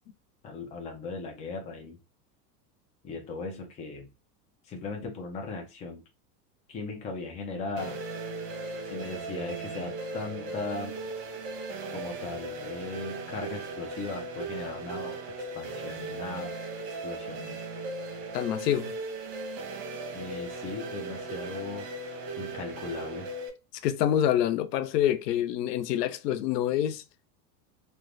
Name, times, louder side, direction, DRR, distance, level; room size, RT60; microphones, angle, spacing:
voice 1, 0.4-2.0 3.0-4.1 4.6-6.0 6.7-8.0 8.8-11.0 11.9-16.5 17.0-17.9 20.1-23.3, left 3 dB, 15° left, 0.4 m, -38 dB
sound 1, 7.8-23.5, right 3 dB, 65° right, 0.9 m, -37 dB
voice 2, 18.3-18.9 23.8-27.0, left 11 dB, 85° left, 0.6 m, -26 dB
3.1 x 2.1 x 2.5 m
supercardioid pair, 125°, 48 cm